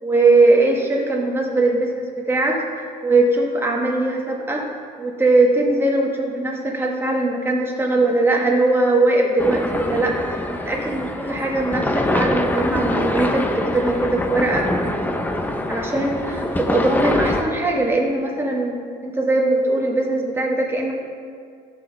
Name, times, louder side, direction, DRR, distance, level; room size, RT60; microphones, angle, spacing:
voice 1, 0.0-4.6 5.0-14.7 15.7-18.8 19.0-20.9, right 2 dB, 15° right, -2 dB, 1.5 m, -20 dB
sound 1, 9.4-17.4, left 1 dB, 10° left, 0.7 m, -24 dB
14.0 x 6.1 x 3.3 m, 2.2 s
cardioid pair, 110°, 17 cm